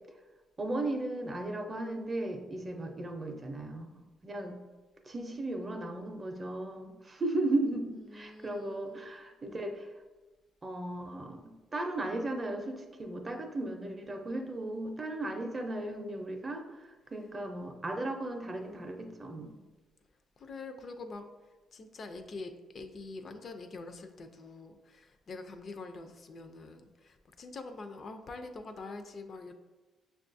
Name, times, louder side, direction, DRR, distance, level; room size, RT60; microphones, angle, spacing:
voice 1, 0.6-3.9 4.2-4.6 5.1-9.9 10.6-16.8 17.1-19.6, right 2 dB, 30° right, 4 dB, 0.5 m, -36 dB
voice 2, 8.1-9.1 20.4-21.3 21.7-29.5, left 3 dB, 50° left, 7 dB, 0.4 m, -45 dB
5.9 x 2.3 x 2.6 m, 1.2 s
cardioid pair, 90°, 0 cm